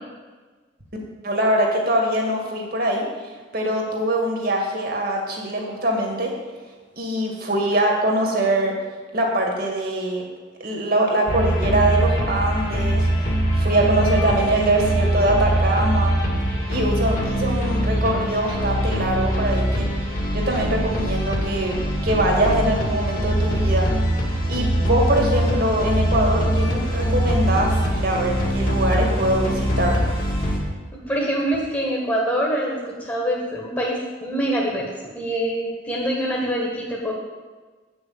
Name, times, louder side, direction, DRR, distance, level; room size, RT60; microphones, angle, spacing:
voice 1, 1.2-3.1 3.5-6.3 7.0-8.7 9.1-10.2 10.6-16.1 16.7-19.9 20.3-21.8 22.0-23.9 24.5-30.0, right 1 dB, 50° right, 0 dB, 2.1 m, -23 dB
sound 1, 11.3-30.6, right 1 dB, 45° left, 2.2 m, -22 dB
voice 2, 31.1-34.9 35.1-37.1, right 1 dB, 15° left, -3 dB, 1.7 m, -25 dB
8.6 x 6.4 x 8.0 m, 1.4 s
head